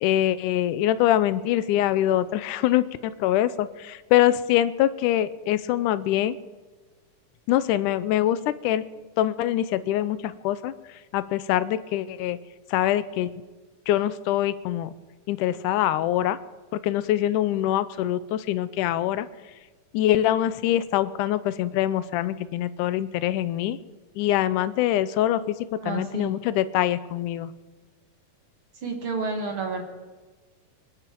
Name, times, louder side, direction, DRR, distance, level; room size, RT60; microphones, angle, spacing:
voice 1, 0.0-6.4 7.5-8.8 9.2-10.7 11.1-12.4 12.7-13.3 13.9-14.9 15.3-16.4 16.7-19.3 19.9-23.8 24.2-27.5, left 12 dB, 85° left, 15 dB, 2.1 m, -24 dB
voice 2, 25.8-26.3 28.8-29.8, right 4 dB, 45° right, 3 dB, 2.3 m, -30 dB
24.0 x 10.5 x 4.6 m, 1.3 s
omnidirectional pair, 3.6 m